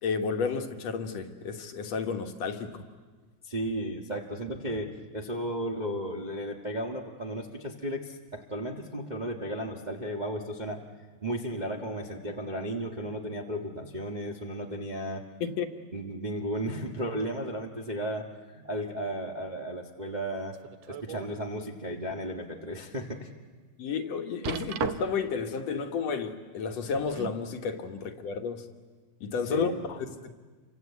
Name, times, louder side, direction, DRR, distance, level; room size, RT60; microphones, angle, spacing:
voice 1, 0.0-2.8 15.4-15.7 23.8-28.7 29.2-30.3, left 5 dB, 65° left, 6 dB, 2.4 m, -32 dB
voice 2, 3.4-10.8 11.2-15.2 15.9-20.5 20.9-23.3 29.5-29.8, equal, 25° right, 1 dB, 1.0 m, -34 dB
sound 1, 20.5-21.4 21.9-22.0 22.6-22.7 24.4-25.3 26.7-27.4 28.4-28.5, right 9 dB, 65° right, 1.9 m, -36 dB
28.5 x 24.5 x 8.3 m, 1.4 s
omnidirectional pair, 3.4 m